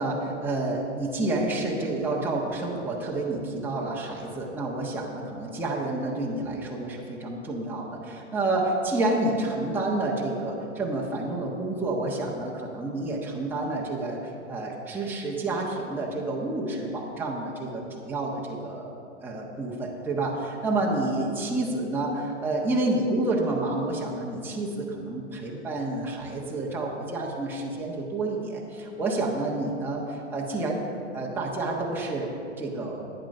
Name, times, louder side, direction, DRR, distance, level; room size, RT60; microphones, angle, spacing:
voice 1, 0.0-18.9 19.2-30.8 31.1-33.1, right 2 dB, 5° right, -4 dB, 1.3 m, -29 dB
11.5 x 9.1 x 5.5 m, 2.7 s
hypercardioid pair, 130°, 37 cm